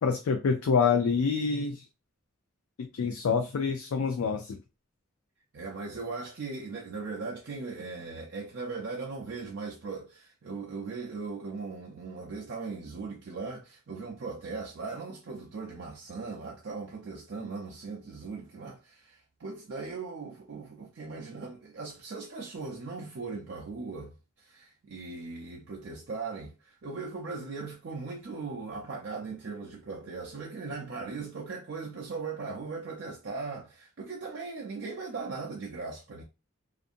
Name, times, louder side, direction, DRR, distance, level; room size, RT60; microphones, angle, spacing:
voice 1, 0.0-1.8 2.8-4.6, left 5 dB, 85° left, 0.4 m, -27 dB
voice 2, 5.5-36.2, right 4 dB, 55° right, 0.4 m, -39 dB
2.6 x 2.5 x 2.5 m
head